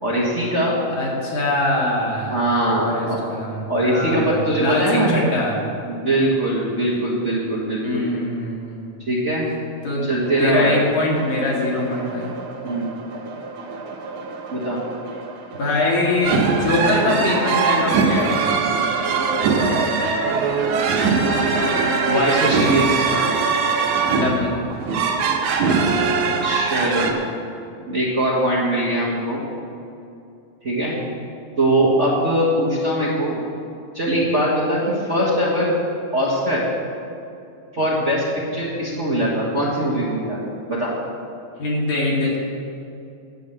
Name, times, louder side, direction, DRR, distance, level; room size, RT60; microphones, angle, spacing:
voice 1, 0.0-0.8 2.3-3.3 3.7-5.2 5.9-8.0 9.1-9.4 10.0-10.8 12.6-12.9 14.5-14.8 21.5-23.1 26.4-27.1 27.8-29.4 30.6-31.0 31.6-33.4 33.9-35.7 36.1-36.6 37.7-38.2 38.5-40.9, right 1 dB, 30° right, -6 dB, 1.6 m, -21 dB
voice 2, 0.9-2.4 2.8-5.6 7.8-9.1 9.8-10.0 10.4-12.3 15.5-18.5 24.1-24.5 41.6-42.4, left 2 dB, 75° left, -4 dB, 3.6 m, -23 dB
sound 1, 10.3-22.3, right 3 dB, 55° right, 1.7 m, -35 dB
sound 2, 16.2-27.1, right 4 dB, 90° right, 2.6 m, -20 dB
10.5 x 8.4 x 7.2 m, 2.6 s
omnidirectional pair, 3.3 m